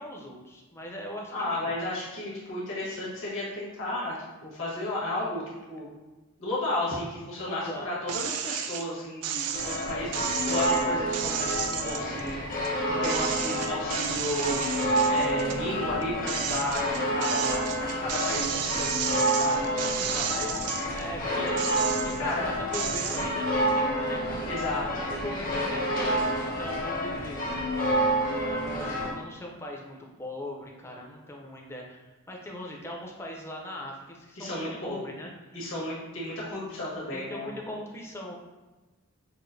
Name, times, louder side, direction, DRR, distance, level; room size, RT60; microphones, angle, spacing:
voice 1, 0.0-1.3 1.7-1.8 7.5-7.9 19.4-19.7 20.2-21.9 22.2-24.4 25.0-27.5 28.4-35.6 37.1-38.3, left 1 dB, 10° left, 0 dB, 0.5 m, -40 dB
voice 2, 1.3-5.4 5.7-5.9 6.4-12.6 13.0-14.6 15.1-16.8 17.1-17.7 18.0-20.6 21.3-21.4 22.1-22.5 24.5-25.2 34.4-35.0 35.5-37.5, left 1 dB, 60° left, -6 dB, 1.3 m, -33 dB
sound 1, 8.1-8.8 9.2-12.7 13.0-15.6 16.0-21.0 21.5-22.3 22.7-23.3, right 9 dB, 90° right, 0.4 m, -33 dB
sound 2, 9.5-29.1, equal, 40° left, 0.8 m, -29 dB
5.8 x 2.5 x 2.6 m, 1.2 s
head